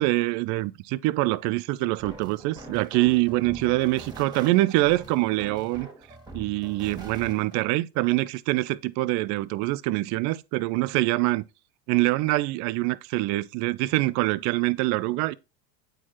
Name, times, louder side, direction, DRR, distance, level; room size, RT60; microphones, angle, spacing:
voice 1, 0.0-5.9 6.3-11.5 11.9-15.3, right 19 dB, 40° right, 0.4 m, -25 dB
sound 1, 2.0-7.6, right 2 dB, 10° right, 1.8 m, -44 dB
8.7 x 4.4 x 3.0 m
hypercardioid pair, 100°, 49 cm